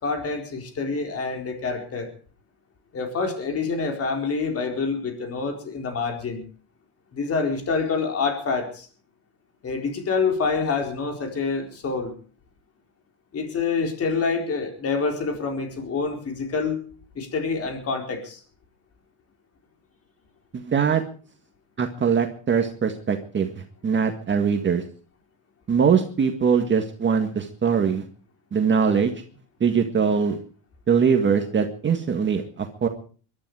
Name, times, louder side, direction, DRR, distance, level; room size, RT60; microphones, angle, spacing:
voice 1, 0.0-2.1 2.9-6.4 7.1-8.9 9.6-12.1 13.3-16.8 17.2-18.4, left 4 dB, 35° left, 4 dB, 4.4 m, -27 dB
voice 2, 20.5-21.0 21.8-24.8 25.7-28.1 28.5-29.1 29.6-30.4 30.9-32.9, right 6 dB, 25° right, 4 dB, 1.8 m, -22 dB
22.0 x 12.5 x 4.9 m, 0.41 s
cardioid pair, 135°, 43 cm